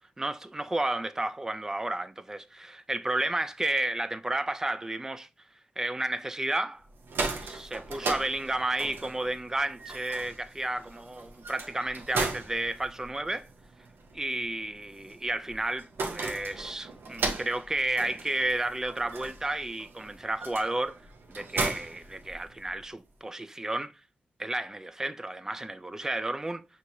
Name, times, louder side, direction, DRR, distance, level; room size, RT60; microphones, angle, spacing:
voice 1, 0.2-5.3 5.8-6.8 7.4-13.5 14.1-21.0 21.3-23.9 24.4-26.6, right 2 dB, 15° right, 0.4 m, -32 dB
sound 1, 6.9-22.8, right 3 dB, 75° right, 0.8 m, -37 dB
6.1 x 2.8 x 2.7 m
wide cardioid pair, 125°, 4 cm